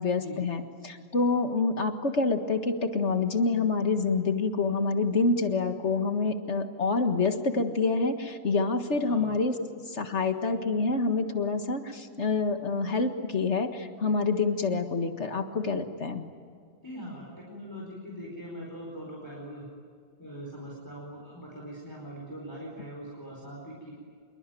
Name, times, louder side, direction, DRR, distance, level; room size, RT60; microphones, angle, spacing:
voice 1, 0.0-9.5 9.9-16.3, left 3 dB, 35° left, 7 dB, 1.8 m, -27 dB
voice 2, 16.8-19.7 20.2-23.9, equal, 10° left, -2 dB, 4.6 m, -41 dB
27.0 x 22.5 x 9.2 m, 2.1 s
omnidirectional pair, 2.1 m